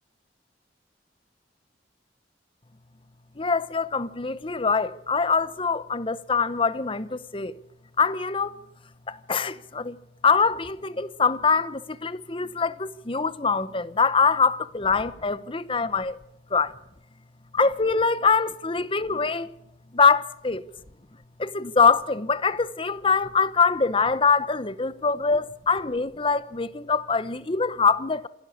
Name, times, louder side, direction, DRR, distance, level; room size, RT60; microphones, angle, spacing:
voice 1, 3.4-7.5 8.0-8.6 9.1-10.0 10.2-16.2 16.5-16.7 17.5-19.5 19.9-20.6 21.4-28.3, left 5 dB, 30° left, 0.9 m, -23 dB
27.0 x 12.0 x 8.5 m
head